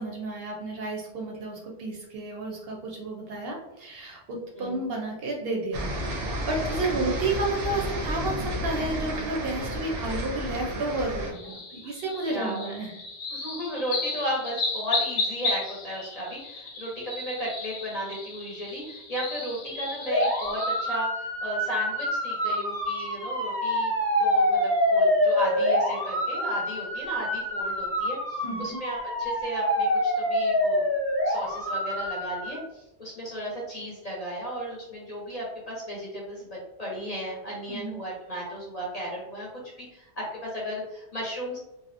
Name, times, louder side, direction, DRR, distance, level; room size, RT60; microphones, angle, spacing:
voice 1, 0.0-12.9 28.4-28.8 37.7-38.0, right 2 dB, 65° right, -1 dB, 0.7 m, -31 dB
sound 1, 5.7-11.3, right 1 dB, 90° right, 0.9 m, -31 dB
sound 2, 11.3-21.0, left 3 dB, 90° left, 0.9 m, -34 dB
voice 2, 12.2-12.7 13.3-23.9 24.2-30.9 31.2-39.5 39.8-41.6, equal, 45° left, -4 dB, 0.6 m, -35 dB
sound 3, 20.1-32.5, left 1 dB, 25° right, 0.3 m, -26 dB
2.7 x 2.1 x 2.4 m, 0.92 s
omnidirectional pair, 1.2 m